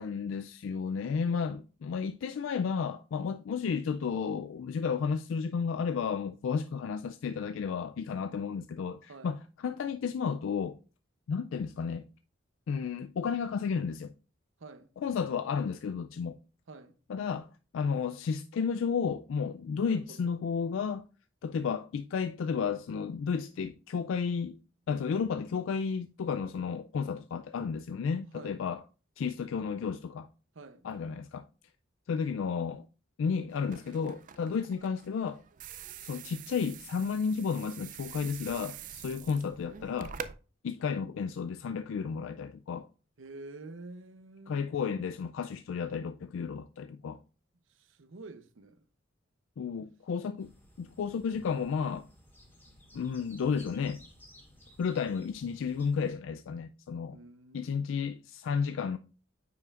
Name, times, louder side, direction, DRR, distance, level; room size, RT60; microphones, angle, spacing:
voice 1, 0.0-10.8 11.3-12.0 12.7-14.1 15.0-16.4 17.1-21.0 21.4-24.6 24.9-28.8 29.2-30.3 30.8-31.5 32.1-32.8 33.2-35.4 36.0-40.1 40.6-42.9 44.5-47.2 49.6-50.5 50.8-52.1 52.9-54.0 54.8-57.2 57.5-59.0, left 6 dB, 80° left, 0.3 m, -32 dB
voice 2, 9.1-9.4 14.6-14.9 16.7-16.9 19.8-20.3 28.3-28.6 30.5-30.9 40.8-41.0 43.2-45.0 47.7-48.8 57.1-58.0, right 3 dB, 80° right, 0.7 m, -49 dB
sound 1, 33.5-40.3, right 8 dB, 40° right, 0.4 m, -46 dB
sound 2, 50.4-56.1, equal, 10° left, 2.0 m, -57 dB
9.1 x 5.5 x 2.4 m
head